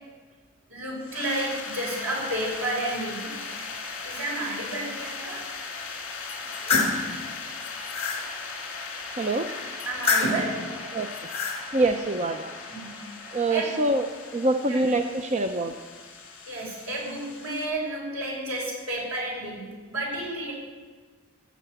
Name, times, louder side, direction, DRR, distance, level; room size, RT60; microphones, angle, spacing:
voice 1, 0.7-3.3 4.0-5.4 9.8-10.7 12.7-13.9 14.7-14.8 16.4-20.5, right 2 dB, 85° right, -3 dB, 5.8 m, -31 dB
sound 1, 1.0-17.7, left 4 dB, 60° left, 2.7 m, -38 dB
sound 2, 6.3-7.0 7.6-8.2 9.8-10.5 11.1-11.6, left 4 dB, 30° left, 3.1 m, -26 dB
voice 2, 9.2-9.5 10.9-11.1 11.7-12.5 13.3-14.0 14.3-15.7, right 2 dB, 30° right, 7 dB, 0.6 m, -25 dB
16.5 x 7.3 x 8.0 m, 1.4 s
head